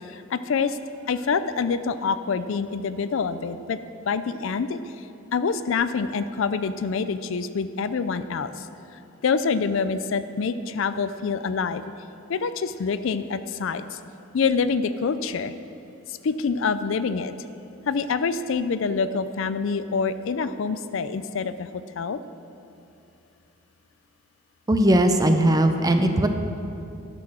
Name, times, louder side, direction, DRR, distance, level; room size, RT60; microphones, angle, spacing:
voice 1, 0.1-0.8 1.1-3.8 4.1-4.8 5.3-8.7 9.2-11.8 12.3-14.0 14.3-15.5 16.1-17.3 17.9-21.7 22.0-22.2, left 5 dB, 65° left, 12 dB, 0.4 m, -26 dB
voice 2, 24.7-26.3, right 1 dB, 15° right, 6 dB, 0.6 m, -19 dB
12.0 x 6.8 x 6.2 m, 2.7 s
head